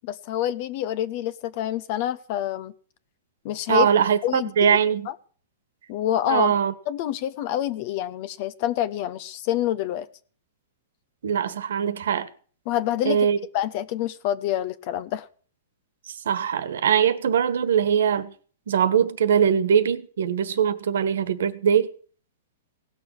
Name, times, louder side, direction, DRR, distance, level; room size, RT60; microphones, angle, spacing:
voice 1, 0.0-2.7 3.4-3.9 4.2-4.8 5.1-5.2 5.9-6.5 6.9-10.1 12.7-13.2 13.5-15.3, left 12 dB, 40° left, 0.8 m, -27 dB
voice 2, 3.7-5.1 6.3-6.7 11.2-12.3 13.0-13.4 16.1-18.3 18.7-21.9, right 8 dB, 75° right, 1.5 m, -22 dB
17.5 x 6.9 x 7.9 m
hypercardioid pair, 160°, 0 cm